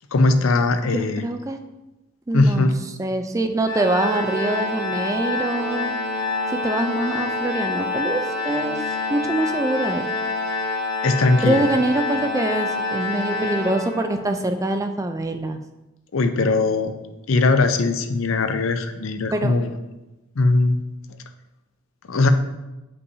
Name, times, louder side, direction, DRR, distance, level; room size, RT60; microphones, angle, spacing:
voice 1, 0.1-1.2 2.3-2.7 11.0-11.6 16.1-16.9 17.3-19.7 20.4-20.8 22.1-22.3, left 3 dB, 65° left, 8 dB, 0.5 m, -19 dB
voice 2, 0.9-1.6 2.3-2.7 3.0-5.9 6.5-8.8 9.1-10.1 11.4-15.6 19.3-19.5, right 1 dB, 15° right, 6 dB, 0.3 m, -24 dB
Organ, 3.7-14.4, left 2 dB, 45° left, 1.2 m, -27 dB
8.1 x 5.4 x 2.7 m, 1.0 s
head